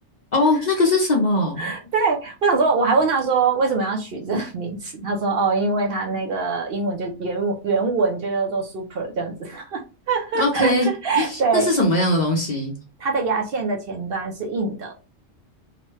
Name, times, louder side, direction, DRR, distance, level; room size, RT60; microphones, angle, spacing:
voice 1, 0.3-1.7 10.3-10.9 11.1-12.7, left 2 dB, 45° left, 0 dB, 0.6 m, -20 dB
voice 2, 1.6-9.8 10.1-11.7 13.0-14.9, right 4 dB, 60° right, 2 dB, 0.7 m, -23 dB
2.9 x 2.2 x 3.1 m, 0.32 s
omnidirectional pair, 1.2 m